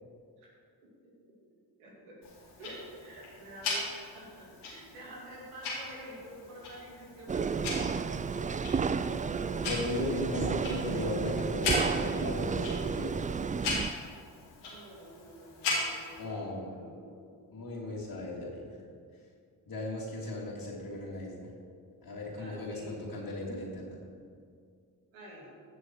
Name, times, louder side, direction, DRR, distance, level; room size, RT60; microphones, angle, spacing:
voice 1, 1.5-2.2 2.6-9.6 14.7-17.3 22.4-22.9 25.1-25.5, right 1 dB, 85° right, -4 dB, 3.0 m, -48 dB
Tick-tock, 2.2-16.2, left 3 dB, 85° left, 2.7 m, -39 dB
sound 1, 7.3-13.9, right 5 dB, 15° right, 0.4 m, -32 dB
voice 2, 9.7-13.1 16.2-16.7 17.5-18.8 19.7-21.5 22.0-24.0, left 1 dB, 45° left, -5 dB, 2.9 m, -36 dB
15.5 x 6.3 x 4.7 m, 2.2 s
hypercardioid pair, 40°, 49 cm